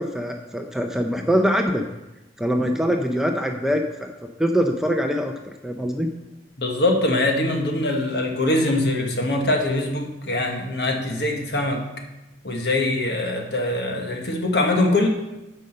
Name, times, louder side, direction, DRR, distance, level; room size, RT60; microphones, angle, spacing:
voice 1, 0.0-1.8 2.4-4.1 4.4-6.1, equal, ahead, 3 dB, 0.6 m, -23 dB
voice 2, 6.6-11.8 12.4-15.1, left 2 dB, 65° left, 2 dB, 1.5 m, -23 dB
9.7 x 5.3 x 6.5 m, 0.98 s
head